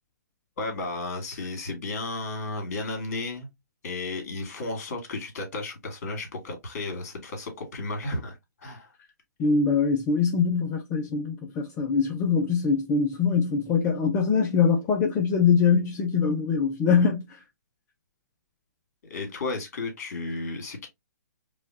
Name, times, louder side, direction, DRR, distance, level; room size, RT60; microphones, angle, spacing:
voice 1, 0.6-3.5 3.8-8.9 19.1-20.9, left 2 dB, 50° left, 2.1 m, -33 dB
voice 2, 9.4-17.4, left 5 dB, 20° left, 0.6 m, -23 dB
4.9 x 2.4 x 2.7 m
hypercardioid pair, 135°, 10 cm